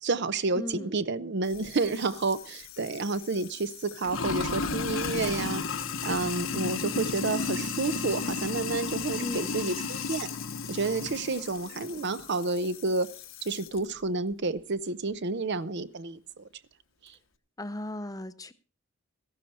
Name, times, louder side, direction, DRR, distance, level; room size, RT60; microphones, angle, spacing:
voice 1, 0.0-5.6 6.0-10.3 10.7-13.1 13.4-16.5 17.0-17.2, right 3 dB, 60° right, 0.7 m, -30 dB
voice 2, 0.6-1.0 9.2-9.6 17.6-18.5, left 1 dB, 15° left, 0.7 m, -36 dB
Sink (filling or washing), 1.5-13.8, left 4 dB, 70° left, 1.1 m, -34 dB
14.5 x 12.0 x 4.2 m
head